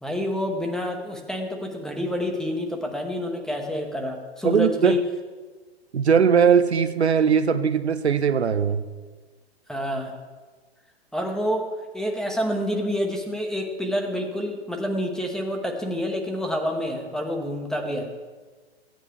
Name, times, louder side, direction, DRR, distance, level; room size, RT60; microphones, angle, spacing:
voice 1, 0.0-5.0 9.7-10.1 11.1-18.1, equal, ahead, 3 dB, 1.1 m, -28 dB
voice 2, 4.4-5.0 5.9-8.8, right 7 dB, 80° right, 10 dB, 0.7 m, -19 dB
15.5 x 9.2 x 3.4 m, 1.4 s
figure-of-eight pair, 115°, 32 cm